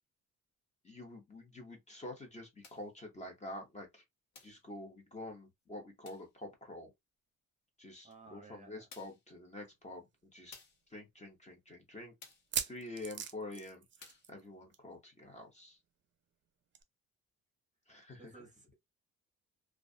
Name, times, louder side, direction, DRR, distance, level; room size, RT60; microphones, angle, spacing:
voice 1, 0.8-4.0 4.4-6.9 7.8-10.6 10.9-12.1 12.7-15.8 17.9-18.5, left 2 dB, 25° left, 0.9 m, -47 dB
sound 1, 2.6-2.9 4.3-4.7 6.0-6.3 8.1-8.2 8.9-9.3 10.5-10.9 12.2-12.5 14.0-14.3, left 5 dB, 65° left, 1.0 m, -56 dB
voice 2, 8.0-8.9 18.2-18.7, right 4 dB, 25° right, 0.9 m, -56 dB
sound 2, 9.6-9.7 10.0-10.1 10.7-10.8 12.3-14.5 14.7-14.9 15.2-15.3 16.7-16.8, right 8 dB, 40° right, 0.5 m, -40 dB
2.4 x 2.3 x 2.5 m
cardioid pair, 90°, 30 cm